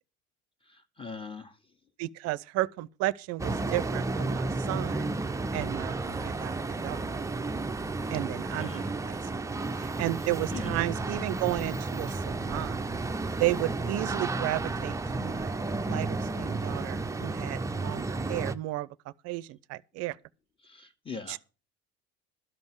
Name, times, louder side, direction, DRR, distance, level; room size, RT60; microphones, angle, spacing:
voice 1, 0.7-1.5 8.5-8.9 10.5-10.7 20.6-21.4, left 4 dB, 15° left, 1.7 m, -41 dB
voice 2, 2.0-5.1 5.5-6.6 6.8-7.1 8.1-9.2 9.8-12.8 13.4-15.5 15.8-18.9 19.2-20.2 21.3-21.4, right 17 dB, 50° right, 0.6 m, -33 dB
sound 1, 3.4-18.5, right 3 dB, 10° right, 0.6 m, -32 dB
12.5 x 5.3 x 7.8 m
hypercardioid pair, 70°, 33 cm